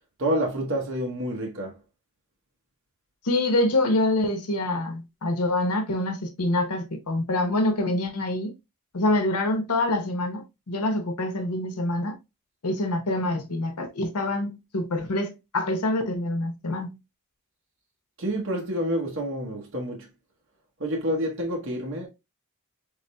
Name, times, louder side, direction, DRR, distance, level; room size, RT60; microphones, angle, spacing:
voice 1, 0.2-1.8 18.2-20.1 20.8-22.1, equal, 60° right, 1.0 m, -28 dB
voice 2, 3.2-8.5 8.9-12.1 12.6-17.0, left 2 dB, 90° left, 0.9 m, -26 dB
4.1 x 3.6 x 2.2 m
head